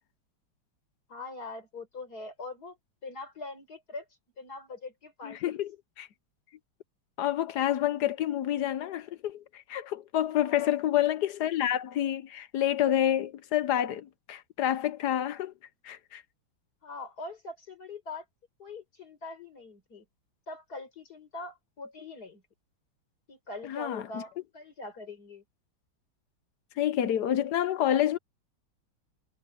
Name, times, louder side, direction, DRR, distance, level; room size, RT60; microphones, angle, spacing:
voice 1, 1.1-2.8 3.0-4.0 4.4-5.6 10.4-10.8 16.8-18.2 18.6-20.0 20.5-22.4 23.3-25.4, left 3 dB, 50° left, 5.2 m, -42 dB
voice 2, 5.2-5.7 6.0-6.1 7.2-15.5 15.8-16.2 23.6-24.2 26.8-28.2, left 11 dB, 65° left, 1.2 m, -28 dB
omnidirectional pair, 2.2 m